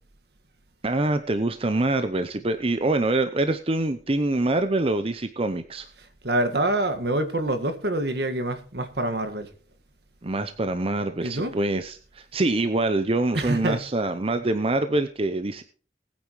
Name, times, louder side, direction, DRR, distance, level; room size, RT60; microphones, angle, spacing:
voice 1, 0.8-5.9 10.2-15.6, right 2 dB, 35° right, 0.7 m, -25 dB
voice 2, 6.0-9.5 11.2-11.6 13.3-13.8, right 1 dB, 65° right, 1.7 m, -26 dB
19.5 x 9.4 x 3.1 m
head